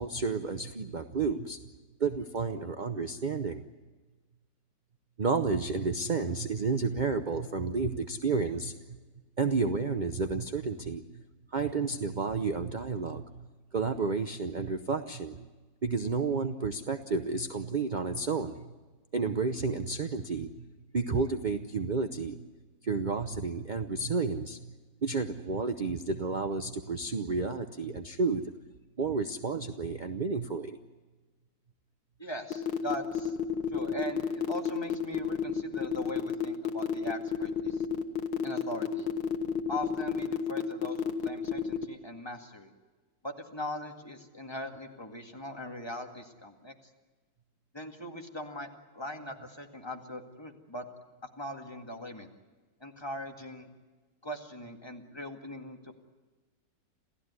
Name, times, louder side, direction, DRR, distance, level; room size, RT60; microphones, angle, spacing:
voice 1, 0.0-1.6 2.0-3.6 5.2-8.7 9.4-11.0 11.5-13.5 13.7-15.4 15.8-18.6 19.1-20.5 20.9-22.4 22.8-24.7 25.0-28.4 29.0-30.7, right 4 dB, 45° right, 8 dB, 0.6 m, -31 dB
voice 2, 32.2-33.4 33.7-37.9 38.4-39.1 39.7-42.7 43.2-46.7 47.7-50.9 51.4-52.3 52.8-53.7 54.2-55.9, left 1 dB, 15° left, 3 dB, 2.0 m, -40 dB
sound 1, 32.5-41.8, left 7 dB, 75° left, 2.0 m, -30 dB
28.0 x 16.0 x 9.6 m, 1.3 s
omnidirectional pair, 2.0 m